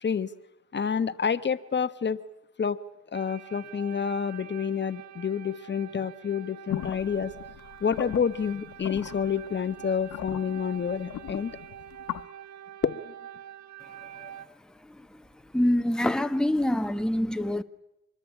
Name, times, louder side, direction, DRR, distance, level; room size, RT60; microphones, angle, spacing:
voice 1, 0.7-2.2 2.6-2.8 3.1-7.3 7.8-11.5 12.8-13.0, left 6 dB, 35° left, 1.2 m, -28 dB
sound 1, 3.1-14.5, right 11 dB, 65° right, 1.6 m, -46 dB
sound 2, 6.7-12.2, left 13 dB, 75° left, 1.3 m, -38 dB
voice 2, 14.0-15.2 15.5-17.6, left 1 dB, ahead, 1.3 m, -27 dB
26.0 x 21.5 x 10.0 m
cardioid pair, 90°, 30 cm